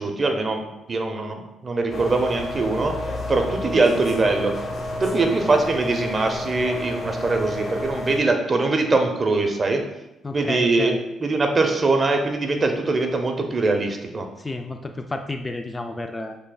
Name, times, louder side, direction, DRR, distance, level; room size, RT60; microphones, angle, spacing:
voice 1, 0.0-2.9 3.3-4.5 5.0-9.8 10.3-10.9 11.2-14.3, right 3 dB, 35° right, 4 dB, 0.7 m, -22 dB
sound 1, 1.9-8.2, left 1 dB, 50° left, 0.8 m, -30 dB
voice 2, 10.2-11.0 14.4-16.4, left 2 dB, 20° left, 5 dB, 0.3 m, -31 dB
6.4 x 3.3 x 2.3 m, 0.93 s
cardioid pair, 90°, 0 cm